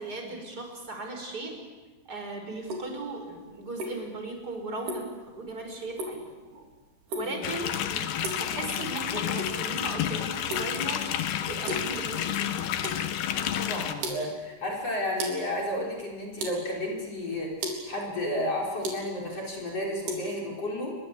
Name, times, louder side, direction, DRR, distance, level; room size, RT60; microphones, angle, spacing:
voice 1, 0.0-1.6 2.1-6.3 7.1-11.1 11.5-12.7 13.5-13.7, right 2 dB, 20° right, 4 dB, 5.6 m, -37 dB
sound 1, 2.6-20.2, right 1 dB, 60° right, 5.7 m, -39 dB
sound 2, 7.4-13.9, left 10 dB, 70° left, 3.3 m, -30 dB
voice 2, 13.3-21.0, left 1 dB, 35° left, 0 dB, 5.8 m, -32 dB
29.0 x 23.0 x 8.5 m, 1.3 s
omnidirectional pair, 5.2 m